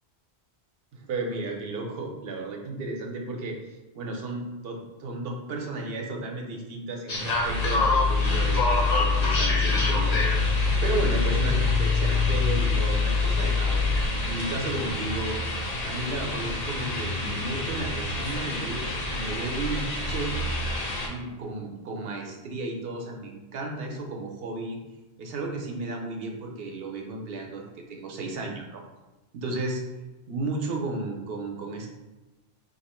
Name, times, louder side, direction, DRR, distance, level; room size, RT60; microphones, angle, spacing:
voice 1, 0.9-3.6 3.9-15.6 15.8-20.4 21.1-24.8 25.2-28.8 29.3-29.8 30.3-31.9, right 2 dB, 65° right, 1 dB, 0.8 m, -34 dB
sound 1, 7.1-21.1, left 2 dB, 45° left, 0.6 m, -28 dB
sound 2, 7.5-14.0, left 5 dB, 80° left, 1.0 m, -25 dB
2.8 x 2.4 x 4.2 m, 1.1 s
omnidirectional pair, 1.1 m